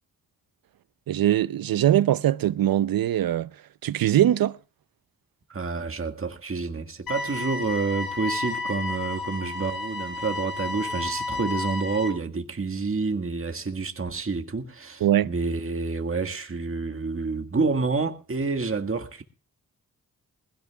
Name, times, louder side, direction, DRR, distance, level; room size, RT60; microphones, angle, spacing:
voice 1, 1.1-4.6 15.0-15.3, right 12 dB, 75° right, 0.7 m, -22 dB
voice 2, 5.5-19.2, right 4 dB, 35° right, 1.8 m, -28 dB
sound 1, 7.1-12.1, left 3 dB, 75° left, 7.6 m, -32 dB
20.0 x 16.5 x 2.3 m
cardioid pair, 55°, 36 cm